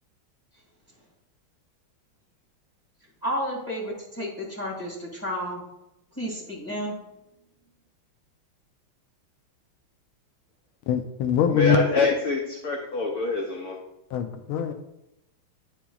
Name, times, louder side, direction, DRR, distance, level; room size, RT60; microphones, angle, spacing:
voice 1, 3.2-5.6 6.2-7.0, equal, 5° left, -3 dB, 1.8 m, -31 dB
voice 2, 10.9-11.8 14.1-14.7, left 9 dB, 80° left, 7 dB, 1.4 m, -23 dB
voice 3, 11.5-13.8, left 3 dB, 65° left, 0 dB, 1.0 m, -25 dB
10.0 x 5.8 x 2.3 m, 0.90 s
omnidirectional pair, 2.3 m